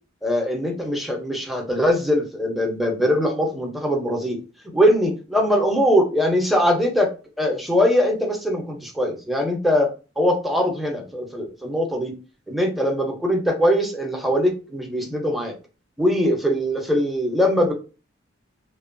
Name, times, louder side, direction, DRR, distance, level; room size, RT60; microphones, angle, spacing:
voice 1, 0.2-4.4 4.7-7.1 7.4-12.1 12.5-15.5 16.0-17.7, equal, ahead, 1 dB, 0.5 m, -21 dB
2.9 x 2.2 x 2.5 m, 0.34 s
head